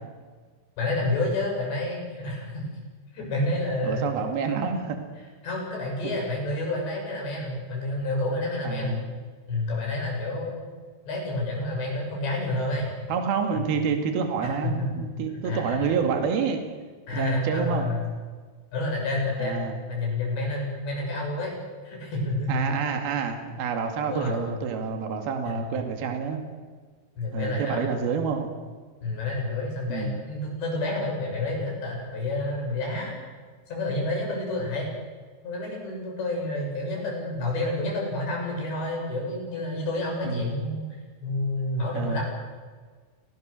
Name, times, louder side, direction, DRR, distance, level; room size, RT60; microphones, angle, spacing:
voice 1, 0.8-2.6 3.1-4.0 5.4-9.1 9.5-10.6 11.1-12.9 13.5-13.6 14.4-14.9 15.4-15.9 17.1-18.1 18.7-21.5 21.8-22.8 24.1-24.4 25.4-25.6 27.2-27.8 29.0-33.2 33.7-34.9 35.4-40.9 41.2-42.2, left 2 dB, 70° left, -1 dB, 9.4 m, -29 dB
voice 2, 3.8-5.0 6.0-6.1 8.6-9.1 13.1-16.6 17.1-17.9 19.4-19.8 22.5-26.4 27.3-28.5 29.9-30.2 40.2-40.6 41.9-42.2, right 6 dB, 60° right, 5 dB, 4.0 m, -28 dB
28.5 x 19.5 x 6.7 m, 1.5 s
omnidirectional pair, 5.2 m